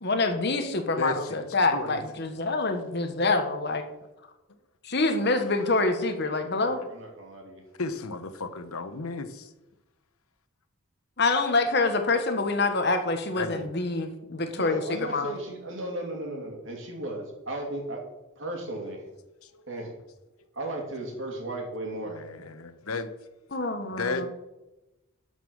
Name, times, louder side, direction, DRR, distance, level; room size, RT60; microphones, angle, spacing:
voice 1, 0.0-3.8 4.8-6.8 11.2-15.3 23.5-24.3, left 3 dB, 50° left, 6 dB, 1.3 m, -26 dB
voice 2, 1.0-1.5 1.7-2.0 7.8-9.5 13.3-13.7 19.5-19.6 22.0-23.1 23.9-24.3, left 3 dB, 90° left, 10 dB, 1.0 m, -33 dB
voice 3, 6.0-7.6 14.5-18.0 18.4-19.0 19.7-19.9 20.5-22.2, right 1 dB, 65° right, 0 dB, 2.9 m, -36 dB
12.0 x 5.5 x 6.4 m, 1.0 s
head